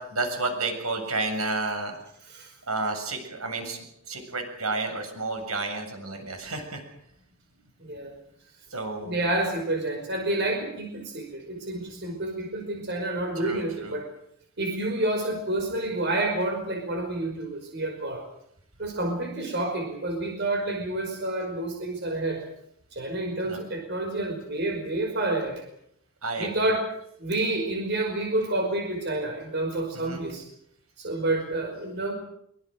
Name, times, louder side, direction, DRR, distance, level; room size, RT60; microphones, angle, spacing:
voice 1, 0.0-1.9 2.7-6.8 8.7-9.3 13.4-14.0 23.4-23.6 26.2-26.8 29.9-30.3, right 3 dB, 80° right, 5 dB, 7.3 m, -31 dB
voice 2, 7.8-8.1 9.0-14.1 14.6-18.2 18.8-22.4 22.9-25.6 26.4-26.8 27.2-30.4 31.0-32.1, right 2 dB, 50° right, 3 dB, 5.3 m, -29 dB
24.5 x 24.5 x 6.5 m, 0.71 s
head